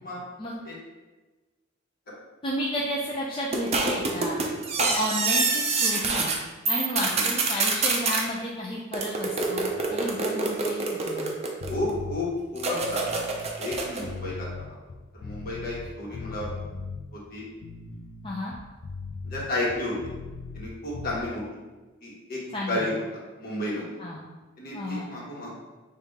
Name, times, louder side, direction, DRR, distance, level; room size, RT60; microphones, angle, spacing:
voice 1, 2.4-4.4 4.8-6.3 6.7-11.4 18.2-18.5 22.5-22.9 24.0-24.2 24.7-25.1, left 1 dB, 25° left, -4 dB, 0.5 m, -32 dB
sound 1, 3.5-6.4 6.6-8.2 8.9-11.9 12.6-14.1, right 3 dB, 35° right, 0.6 m, -26 dB
sound 2, 11.6-12.2 12.7-15.9 16.1-17.0 17.5-20.7 20.9-21.2, left 4 dB, 75° left, 0.5 m, -38 dB
voice 2, 11.7-13.0 13.6-14.5 15.1-16.5 17.1-17.4 19.2-20.0 20.5-21.4 22.0-22.4 22.7-22.9 23.4-23.9 24.6-25.5, left 1 dB, 50° left, -5 dB, 1.4 m, -32 dB
5.4 x 2.8 x 3.5 m, 1.2 s
head